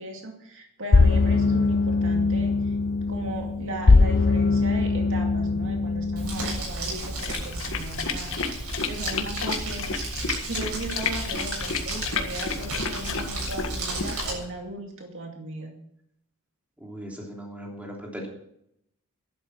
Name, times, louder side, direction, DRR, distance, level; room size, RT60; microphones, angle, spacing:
voice 1, 0.0-2.7 3.1-8.4 8.9-10.1 10.5-15.7, right 1 dB, 60° right, 2 dB, 2.3 m, -37 dB
sound 1, 0.9-6.6, left 3 dB, 45° left, 0.6 m, -21 dB
Crumpling crinkling, 6.2-14.3, right 2 dB, 80° right, 7.4 m, -33 dB
sound 2, 7.2-14.5, left 5 dB, 60° left, 1.7 m, -31 dB
voice 2, 16.8-18.3, equal, 5° right, -1 dB, 3.3 m, -38 dB
12.0 x 11.5 x 6.1 m, 0.75 s
head